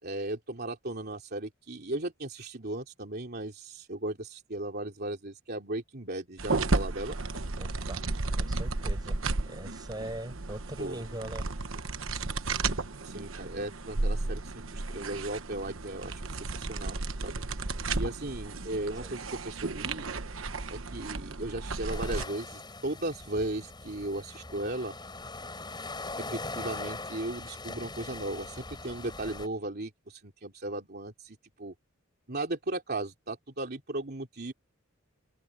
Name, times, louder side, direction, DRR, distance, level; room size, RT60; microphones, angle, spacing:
voice 1, 0.0-7.2 10.8-11.0 13.0-17.4 17.9-20.1 20.7-25.0 26.3-31.7 32.3-34.5, right 2 dB, 50° right, 3.1 m, -36 dB
sound 1, 6.4-22.2, right 3 dB, 80° right, 1.2 m, -33 dB
voice 2, 7.6-8.1 8.4-9.2 9.5-11.5 19.0-19.1, right 1 dB, 20° right, 7.1 m, -41 dB
sound 2, 21.9-29.5, left 3 dB, 20° left, 8.0 m, -41 dB
head